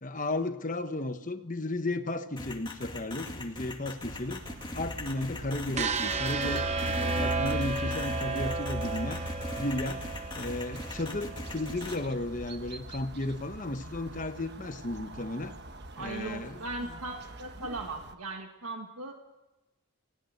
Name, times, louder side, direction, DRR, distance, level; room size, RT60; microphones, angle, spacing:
voice 1, 0.0-4.4 4.7-6.6 7.0-9.2 9.6-10.0 10.3-15.6 16.0-16.6, left 2 dB, 35° left, 9 dB, 1.1 m, -34 dB
sound 1, 2.4-12.0, left 2 dB, 20° left, 2.1 m, -40 dB
sound 2, 4.0-18.1, right 2 dB, 50° right, 1.3 m, -45 dB
sound 3, 5.7-11.8, right 3 dB, 30° right, 0.9 m, -32 dB
voice 2, 16.0-19.1, right 2 dB, 90° right, 4 dB, 1.6 m, -38 dB
20.0 x 17.5 x 7.9 m, 1.1 s
head